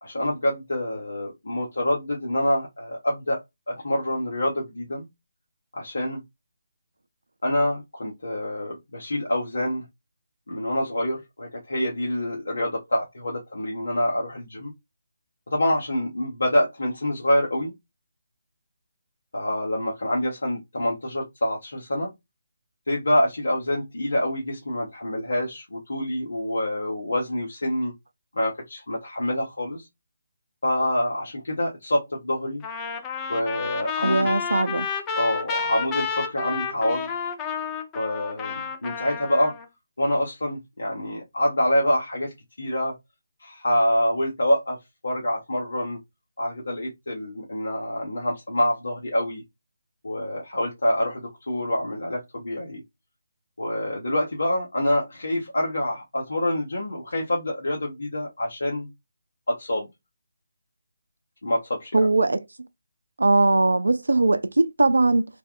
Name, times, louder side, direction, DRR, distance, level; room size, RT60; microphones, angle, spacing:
voice 1, 0.0-3.4 3.7-5.1 5.7-6.2 7.4-9.8 10.5-14.7 15.5-17.7 19.3-22.1 22.9-27.9 28.3-29.9 30.6-32.6 33.3-34.3 35.2-37.1 37.9-39.5 40.0-42.3 42.6-42.9 43.4-44.8 45.0-46.0 46.4-49.4 50.0-52.8 53.6-58.9 59.5-59.9 61.4-62.0, left 1 dB, 70° left, 1.1 m, -26 dB
Trumpet, 32.6-39.7, left 6 dB, 15° left, 0.5 m, -31 dB
voice 2, 34.0-34.9 61.9-62.4 63.2-65.3, right 2 dB, 75° right, 0.4 m, -20 dB
3.3 x 2.2 x 2.3 m
figure-of-eight pair, 150°, 0 cm